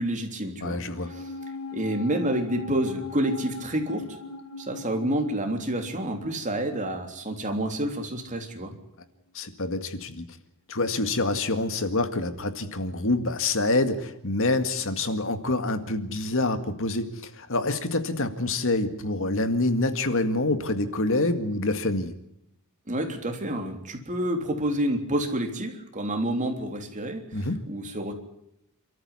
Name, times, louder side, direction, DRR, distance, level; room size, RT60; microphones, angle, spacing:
voice 1, 0.0-0.8 1.1-1.4 1.7-4.1 4.6-8.7 22.9-28.1, right 1 dB, 35° right, 4 dB, 3.5 m, -29 dB
voice 2, 0.6-1.1 9.3-10.3 10.7-22.1 27.3-27.6, left 2 dB, 60° left, 9 dB, 2.0 m, -26 dB
sound 1, 1.0-7.6 7.8-7.9, left 4 dB, 85° left, 1.8 m, -40 dB
28.5 x 14.0 x 9.7 m, 0.80 s
head